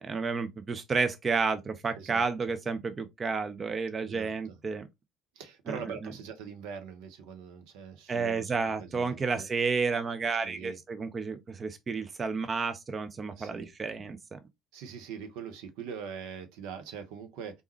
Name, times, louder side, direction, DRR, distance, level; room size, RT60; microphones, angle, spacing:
voice 1, 0.0-4.9 5.7-6.1 8.1-14.4, right 4 dB, 35° right, 0.6 m, -31 dB
voice 2, 4.0-4.6 5.4-8.5 8.8-9.5 10.4-10.8 13.3-13.7 14.7-17.6, right 6 dB, 65° right, 0.7 m, -42 dB
4.0 x 3.5 x 3.0 m
figure-of-eight pair, 55°, 0 cm